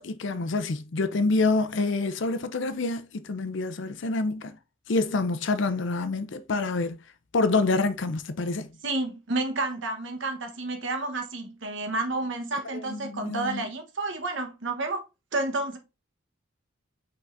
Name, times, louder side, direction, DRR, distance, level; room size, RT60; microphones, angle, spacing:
voice 1, 0.0-4.5 4.9-7.0 7.3-8.7 12.7-13.7, left 3 dB, 60° left, 0.5 m, -27 dB
voice 2, 8.8-15.0 15.3-15.8, right 2 dB, 60° right, 1.0 m, -30 dB
5.4 x 3.9 x 2.5 m
head